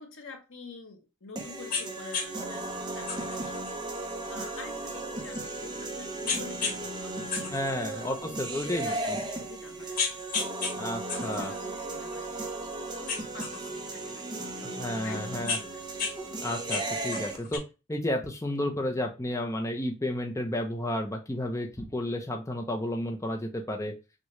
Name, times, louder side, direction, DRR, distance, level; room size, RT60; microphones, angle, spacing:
voice 1, 0.0-10.3 11.2-12.5 13.0-16.0, left 4 dB, 80° left, 1.2 m, -48 dB
sound 1, 1.4-17.4, right 2 dB, 20° right, 0.8 m, -36 dB
sound 2, 1.7-1.9 2.1-2.3 3.1-5.8 6.3-6.8 7.1-8.5 9.1-9.2 9.7-10.7 11.1-12.7 13.1-14.4 15.1-16.1 16.4-17.6, left 5 dB, 45° left, 1.3 m, -34 dB
voice 2, 7.5-8.9 10.7-11.5 14.8-15.6 16.4-17.6 17.9-23.9, left 1 dB, 15° left, 0.6 m, -32 dB
6.3 x 2.3 x 3.0 m
head